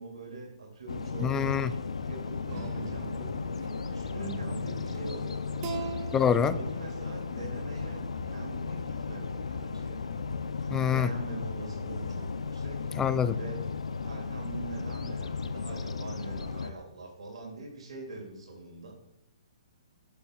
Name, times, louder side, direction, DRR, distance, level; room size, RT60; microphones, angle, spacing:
voice 1, 0.0-1.8 2.0-3.4 3.6-6.0 6.5-10.2 10.6-12.8 13.3-13.6 14.0-18.9, right 2 dB, 75° right, 2.6 m, -43 dB
sound 1, 0.9-16.7, left 4 dB, 85° left, 0.6 m, -35 dB
voice 2, 1.2-1.7 6.1-6.6 10.7-11.1 13.0-13.4, left 8 dB, 15° left, 0.4 m, -25 dB
sound 2, 2.5-3.7 4.2-5.1 5.6-7.9, right 4 dB, 35° right, 1.3 m, -41 dB
13.0 x 7.1 x 2.4 m
hypercardioid pair, 130°, 3 cm